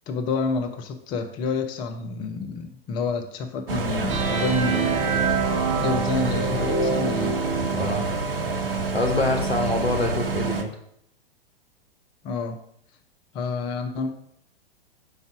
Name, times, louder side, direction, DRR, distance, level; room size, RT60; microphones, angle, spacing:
voice 1, 0.1-5.1 5.8-7.4 12.2-12.6 13.3-14.1, left 4 dB, 15° left, 6 dB, 0.4 m, -28 dB
sound 1, 3.7-10.6, right 3 dB, 65° right, 0.8 m, -27 dB
sound 2, 4.1-7.9, right 5 dB, 25° right, 0.8 m, -26 dB
voice 2, 7.7-8.0 8.9-10.7, left 2 dB, 80° left, 3 dB, 1.3 m, -25 dB
5.2 x 4.7 x 4.7 m, 0.70 s
figure-of-eight pair, 105°, 30 cm